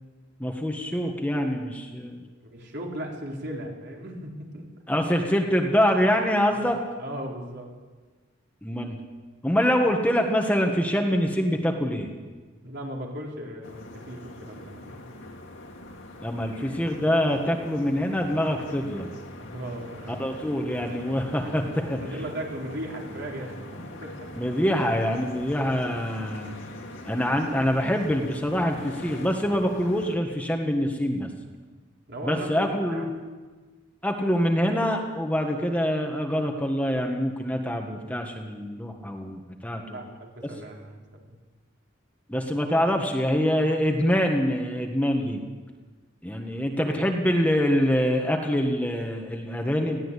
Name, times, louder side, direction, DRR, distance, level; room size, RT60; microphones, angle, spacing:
voice 1, 0.4-2.2 4.9-6.8 8.6-9.0 9.4-12.1 16.2-19.1 20.2-22.0 24.3-26.5 27.0-31.3 32.2-33.3 34.0-40.0 42.3-45.4 46.2-50.0, equal, 10° left, 2 dB, 1.7 m, -25 dB
voice 2, 2.4-4.7 7.0-7.7 12.5-15.2 19.4-20.3 21.9-24.1 32.1-33.1 39.9-41.4, right 1 dB, 60° right, -1 dB, 4.2 m, -37 dB
sound 1, 13.6-30.2, left 1 dB, 70° left, 2.8 m, -43 dB
20.5 x 15.5 x 8.4 m, 1.3 s
head